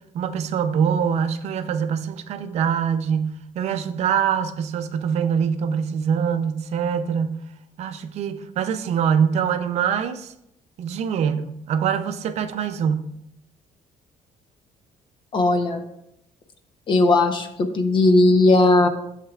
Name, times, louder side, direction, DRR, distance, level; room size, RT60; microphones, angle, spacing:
voice 1, 0.1-7.4 7.8-10.3 10.8-13.0, right 7 dB, 50° right, 0.6 m, -24 dB
voice 2, 15.3-15.8 16.9-18.9, left 2 dB, 35° left, 0.7 m, -17 dB
11.0 x 7.4 x 2.4 m
cardioid pair, 180°, 14 cm